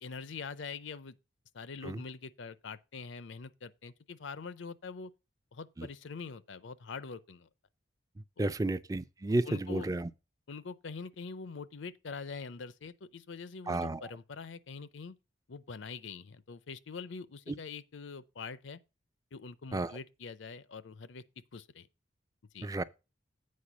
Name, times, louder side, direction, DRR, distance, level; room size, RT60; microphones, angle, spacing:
voice 1, 0.0-1.2 1.5-5.1 5.5-7.5 8.4-8.5 9.4-9.9 10.5-15.2 15.5-18.8 19.3-21.2 21.5-21.9 22.5-22.7, left 5 dB, 75° left, 0.6 m, -44 dB
voice 2, 8.4-10.1 13.7-14.1 19.7-20.0 22.6-22.8, right 2 dB, 20° right, 0.4 m, -32 dB
8.5 x 4.7 x 6.0 m
head